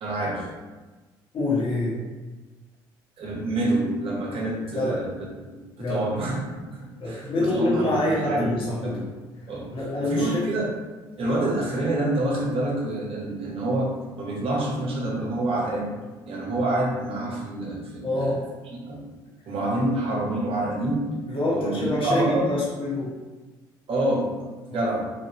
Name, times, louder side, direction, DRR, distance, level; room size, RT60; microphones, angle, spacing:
voice 1, 0.0-0.5 3.2-5.2 5.5-6.4 6.7-9.1 9.5-9.7 10.0-10.7 11.2-15.9 16.3-18.4 18.7-19.0 19.5-21.1 21.5-22.5 23.9-24.3 24.7-25.1, right 1 dB, 55° right, -2 dB, 1.0 m, -27 dB
voice 2, 1.3-2.0 4.7-5.0 5.8-6.0 7.0-9.0 9.7-10.4 18.0-18.4 21.3-23.1 24.7-24.8, left 2 dB, 50° left, -7 dB, 1.2 m, -26 dB
3.1 x 2.5 x 3.0 m, 1.3 s
hypercardioid pair, 60°, 11 cm